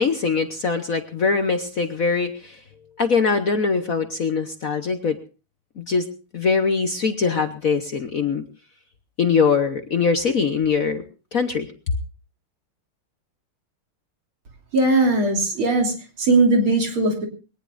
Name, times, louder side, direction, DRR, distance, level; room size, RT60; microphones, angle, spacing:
voice 1, 0.0-2.6 3.0-5.2 5.8-6.0 6.3-8.5 9.2-11.0 11.3-11.7, left 5 dB, 50° left, 7 dB, 1.1 m, -22 dB
voice 2, 14.7-17.3, right 2 dB, 70° right, 2 dB, 4.1 m, -19 dB
22.0 x 18.5 x 2.5 m, 0.35 s
omnidirectional pair, 2.4 m